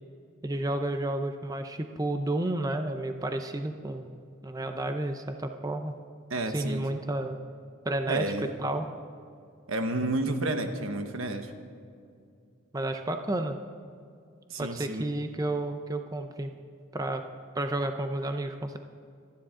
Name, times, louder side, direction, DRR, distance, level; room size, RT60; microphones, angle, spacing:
voice 1, 0.4-4.2 4.4-5.9 6.5-7.4 7.8-8.2 8.6-8.9 12.7-13.6 14.6-16.5 16.9-17.2 17.5-18.8, right 1 dB, 15° right, 6 dB, 0.6 m, -31 dB
voice 2, 6.3-6.9 8.1-8.5 9.7-11.5 14.5-15.1, right 2 dB, 85° right, 7 dB, 1.2 m, -30 dB
26.0 x 10.5 x 3.8 m, 2.4 s
head